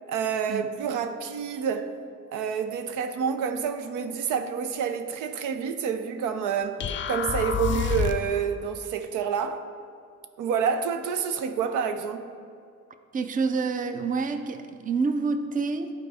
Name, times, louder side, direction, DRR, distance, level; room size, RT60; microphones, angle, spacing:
voice 1, 0.1-1.9 2.3-6.8 7.1-9.6 10.4-12.3, right 7 dB, 85° right, 0.5 m, -28 dB
sound 1, 6.8-8.4, left 7 dB, 40° left, 0.4 m, -28 dB
voice 2, 13.1-15.9, right 4 dB, 25° right, 0.5 m, -28 dB
11.0 x 4.4 x 3.5 m
cardioid pair, 90°, 30 cm